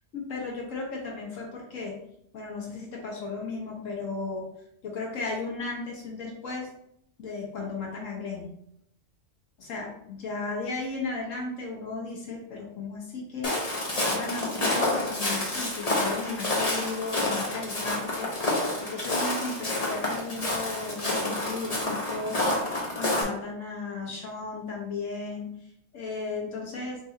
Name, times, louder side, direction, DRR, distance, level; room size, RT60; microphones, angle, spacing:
voice 1, 0.1-2.0 2.3-4.4 4.8-6.7 7.2-8.5 9.6-13.5 14.0-25.5 25.9-27.0, left 3 dB, 85° left, -2 dB, 1.5 m, -35 dB
Walk footsteps, 13.4-23.2, left 1 dB, 35° left, 1.0 m, -29 dB
5.4 x 2.7 x 2.8 m, 0.74 s
omnidirectional pair, 1.3 m